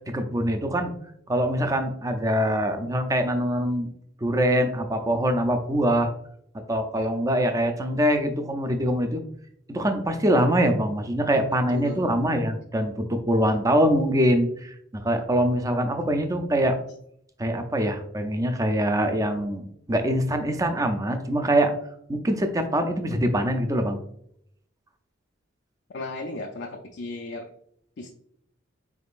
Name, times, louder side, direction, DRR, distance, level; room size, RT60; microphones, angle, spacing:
voice 1, 0.1-0.9 1.3-3.9 4.2-6.1 6.7-9.2 9.7-16.7 17.4-21.7 22.1-24.0, equal, 15° right, 6 dB, 0.4 m, -24 dB
voice 2, 11.7-12.1 25.9-27.5 28.0-28.1, left 2 dB, 60° left, 2 dB, 0.4 m, -35 dB
4.1 x 3.6 x 2.4 m, 0.69 s
head